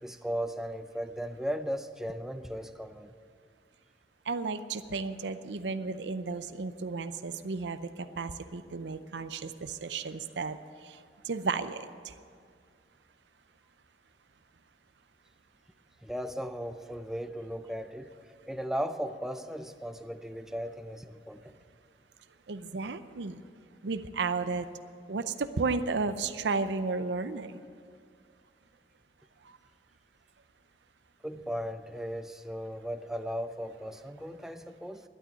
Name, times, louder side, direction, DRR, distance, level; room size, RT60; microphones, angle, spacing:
voice 1, 0.0-3.1 16.0-18.1 18.5-21.6 31.2-35.0, equal, 5° right, 9 dB, 0.5 m, -36 dB
voice 2, 4.3-7.8 8.2-10.6 11.3-11.8 22.5-23.4 23.8-24.7 25.1-25.2 25.6-27.5, right 4 dB, 85° right, 11 dB, 0.6 m, -33 dB
11.5 x 9.1 x 9.8 m, 2.2 s
head